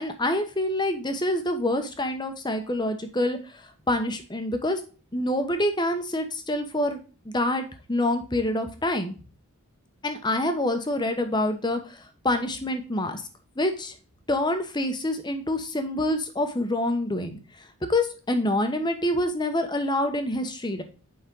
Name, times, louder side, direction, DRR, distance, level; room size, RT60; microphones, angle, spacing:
voice 1, 0.0-3.4 3.9-4.8 5.1-7.0 7.2-9.2 10.0-12.0 12.2-13.2 13.6-13.9 14.3-17.4 17.9-20.8, left 1 dB, 20° left, 7 dB, 1.0 m, -26 dB
8.4 x 5.4 x 3.7 m, 0.36 s
head